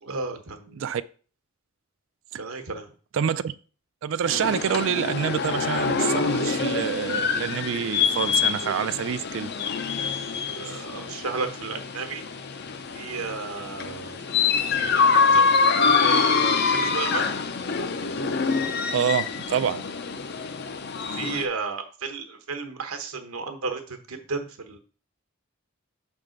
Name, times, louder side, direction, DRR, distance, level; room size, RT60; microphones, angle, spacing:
voice 1, 0.0-0.8 2.4-2.9 10.6-12.2 12.9-14.2 14.8-15.5 16.0-17.3 21.2-24.8, right 4 dB, 80° right, 1.0 m, -33 dB
voice 2, 3.1-3.5 4.0-9.5 18.9-19.8, right 8 dB, 60° right, 0.3 m, -27 dB
sound 1, 4.3-21.5, left 5 dB, 50° left, 0.5 m, -25 dB
6.5 x 3.6 x 5.1 m
head